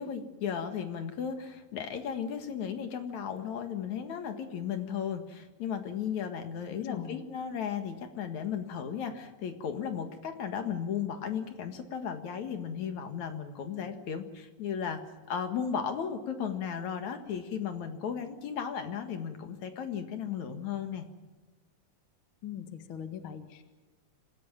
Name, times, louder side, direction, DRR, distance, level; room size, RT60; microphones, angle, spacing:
voice 1, 0.0-21.1, left 7 dB, 65° left, 7 dB, 2.9 m, -35 dB
voice 2, 6.7-7.2 22.4-23.6, left 9 dB, 50° left, 8 dB, 1.9 m, -41 dB
26.5 x 16.0 x 8.9 m, 1.2 s
omnidirectional pair, 3.8 m